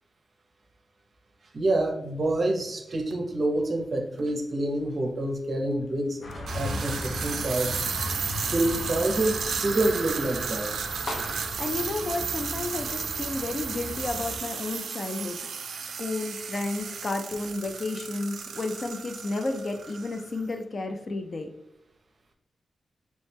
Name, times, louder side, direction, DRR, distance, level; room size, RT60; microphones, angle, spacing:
voice 1, 1.5-7.8 8.5-10.7, right 1 dB, 40° right, 3 dB, 0.6 m, -27 dB
sound 1, 3.1-3.2 4.2-4.3 6.3-20.4, right 6 dB, 90° right, 0.3 m, -34 dB
sound 2, 6.2-14.4, left 1 dB, 75° left, 0.6 m, -37 dB
voice 2, 11.6-15.5 15.8-21.5, left 2 dB, 35° left, 6 dB, 0.3 m, -32 dB
3.1 x 3.1 x 3.3 m, 0.86 s
wide cardioid pair, 165°, 0 cm